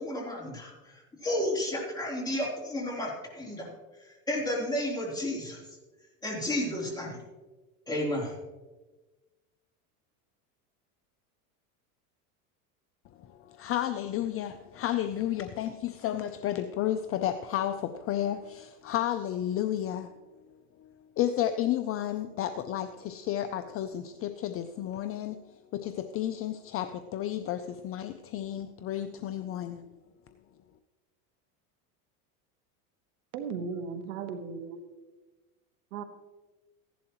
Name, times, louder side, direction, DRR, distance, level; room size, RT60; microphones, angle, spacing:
voice 1, 0.0-3.7 4.0-5.6 6.2-7.2 7.9-8.3, left 1 dB, 10° left, 3.6 m, -32 dB
voice 2, 13.2-20.1 20.8-25.4 25.7-29.9, left 11 dB, 30° left, 0.5 m, -32 dB
voice 3, 33.3-34.8 35.9-36.0, right 5 dB, 80° right, 1.5 m, -36 dB
15.5 x 11.0 x 3.0 m
supercardioid pair, 125°, 44 cm